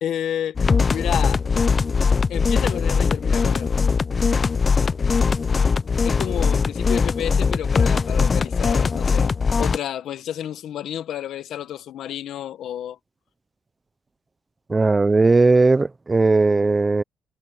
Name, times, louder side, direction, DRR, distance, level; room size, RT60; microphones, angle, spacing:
voice 1, 0.0-1.4 2.3-3.8 6.0-13.0, left 10 dB, 75° left, 1.5 m, -31 dB
sound 1, 0.6-9.8, left 5 dB, 35° left, 0.6 m, -20 dB
voice 2, 14.7-17.0, right 3 dB, 25° right, 0.7 m, -17 dB
cardioid pair, 90°, 0 cm